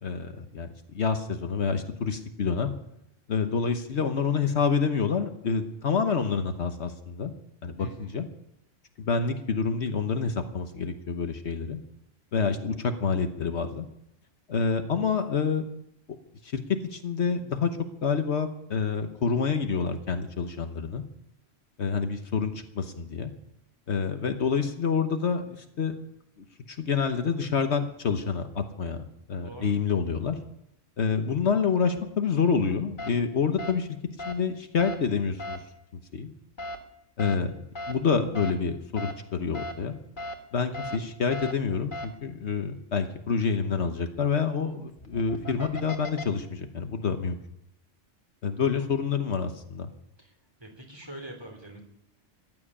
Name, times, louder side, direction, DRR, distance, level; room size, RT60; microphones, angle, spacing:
voice 1, 0.0-2.7 3.3-7.3 7.6-8.3 9.0-11.8 12.3-13.9 14.5-15.6 16.4-21.0 21.8-23.3 23.9-26.0 26.7-29.0 29.3-30.4 31.0-33.9 34.3-35.6 36.1-36.3 37.2-40.0 40.5-47.4 48.4-49.9, left 5 dB, 65° left, 7 dB, 1.3 m, -27 dB
voice 2, 7.8-8.2 29.4-29.7 48.6-48.9 50.2-50.3 50.6-51.8, right 1 dB, 20° right, 2 dB, 3.4 m, -44 dB
sound 1, 33.0-33.1 33.6-33.7 34.2-34.3 34.8-34.9 35.4-35.6 36.6-36.8 37.2-37.3 37.8-37.9 38.3-38.5 39.0-39.1 39.5-39.7 40.2-40.3 40.7-41.0 41.3-41.5 41.9-42.1 44.9-46.2, left 1 dB, 40° left, 1.8 m, -36 dB
14.5 x 9.5 x 10.0 m, 0.81 s
omnidirectional pair, 1.3 m